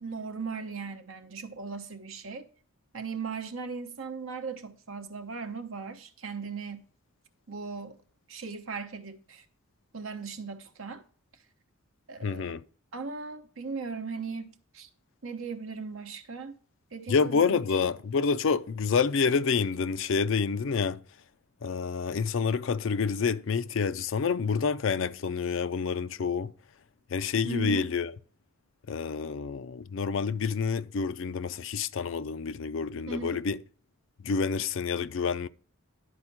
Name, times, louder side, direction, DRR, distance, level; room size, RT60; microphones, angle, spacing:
voice 1, 0.0-2.5 2.9-6.9 7.5-8.0 8.3-9.4 9.9-11.0 12.1-12.5 12.9-14.9 15.2-16.6 16.9-17.6 27.4-27.9 33.1-33.4, right 5 dB, 65° right, 0.9 m, -38 dB
voice 2, 12.2-12.6 17.1-21.0 21.6-26.5 27.1-28.1 28.9-33.6 34.2-35.5, left 5 dB, 60° left, 0.4 m, -28 dB
11.0 x 4.3 x 5.9 m
head